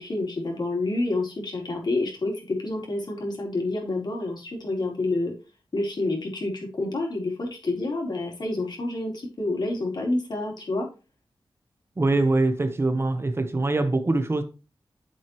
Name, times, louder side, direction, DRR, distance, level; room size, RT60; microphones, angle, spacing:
voice 1, 0.0-5.3 5.7-10.9, left 2 dB, 55° left, 4.0 m, -28 dB
voice 2, 12.0-14.4, right 2 dB, 30° right, 1.0 m, -23 dB
9.3 x 7.6 x 3.1 m
wide cardioid pair, 110°, 9 cm